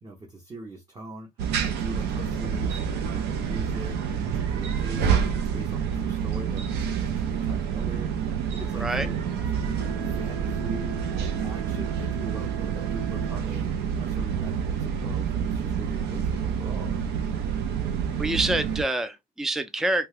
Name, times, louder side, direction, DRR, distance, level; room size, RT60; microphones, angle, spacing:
voice 1, 0.0-16.9, right 1 dB, 25° right, 0.8 m, -43 dB
sound 1, 1.4-18.8, right 7 dB, 80° right, 0.6 m, -28 dB
voice 2, 18.2-20.1, right 2 dB, ahead, 0.4 m, -26 dB
2.8 x 2.3 x 3.2 m
cardioid pair, 110°, 17 cm